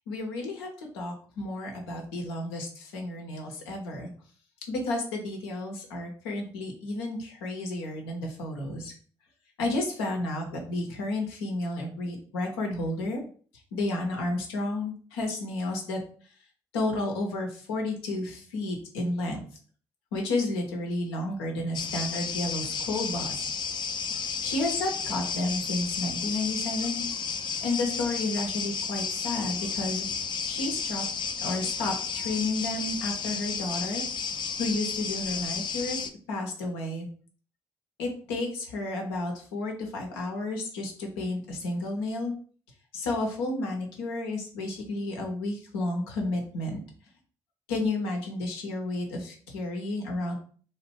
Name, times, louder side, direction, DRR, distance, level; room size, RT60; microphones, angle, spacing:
voice 1, 0.1-4.1 4.7-8.9 9.6-13.2 13.7-16.0 16.7-19.4 20.1-23.5 24.4-27.0 27.5-30.1 30.4-31.0 31.4-34.0 34.6-36.0 36.3-37.1 38.0-42.3 42.9-46.8 47.7-50.3, left 2 dB, 80° left, 1 dB, 0.6 m, -31 dB
sound 1, 21.7-36.1, left 6 dB, 35° left, 0.4 m, -32 dB
2.5 x 2.2 x 3.6 m, 0.43 s
figure-of-eight pair, 40°, 13 cm